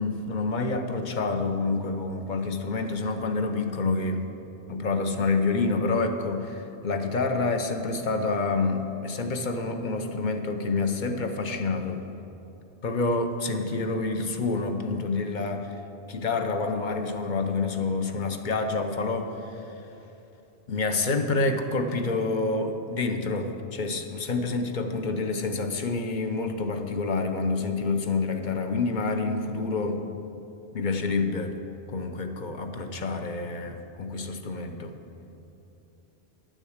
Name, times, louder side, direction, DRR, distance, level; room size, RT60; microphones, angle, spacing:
voice 1, 0.0-4.2 4.7-6.6 6.8-12.0 12.8-15.7 16.1-19.3 20.7-30.0 30.7-31.5 31.9-35.0, left 3 dB, 50° left, 6 dB, 0.8 m, -28 dB
10.0 x 6.3 x 7.9 m, 3.0 s
omnidirectional pair, 1.1 m